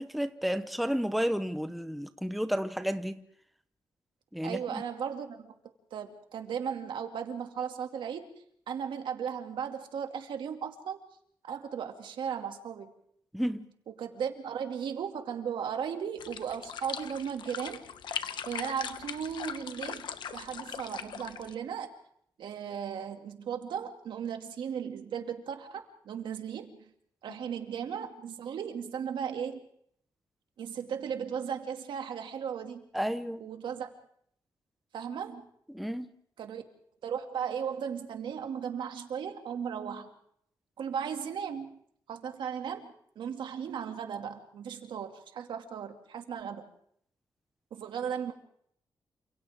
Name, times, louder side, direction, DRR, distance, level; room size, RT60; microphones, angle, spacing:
voice 1, 0.0-3.2 4.3-4.8 13.3-13.7 32.9-33.4 35.7-36.1, equal, ahead, 0.9 m, -32 dB
voice 2, 4.4-5.5 5.9-8.3 8.7-11.0 11.4-12.9 14.0-17.8 18.5-21.9 22.4-26.9 27.2-29.7 30.6-32.8 33.4-33.9 34.9-35.4 36.4-36.6 37.0-40.1 40.8-41.8 42.1-46.7 47.7-48.3, right 7 dB, 85° right, 2.5 m, -36 dB
sound 1, 16.2-21.5, left 8 dB, 75° left, 1.2 m, -40 dB
29.0 x 27.0 x 3.7 m
wide cardioid pair, 140°, 8 cm